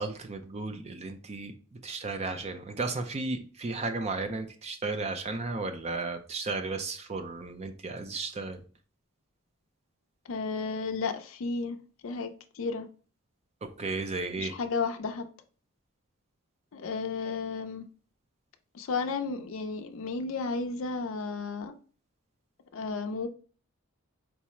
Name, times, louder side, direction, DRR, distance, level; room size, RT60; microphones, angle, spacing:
voice 1, 0.0-1.5 1.8-8.6 13.6-14.5, right 3 dB, 30° right, 0.4 m, -34 dB
voice 2, 10.3-11.8 12.0-12.9 14.4-15.3 16.7-17.8 18.7-21.7 22.7-23.3, left 4 dB, 65° left, 0.4 m, -33 dB
4.6 x 2.1 x 4.2 m
head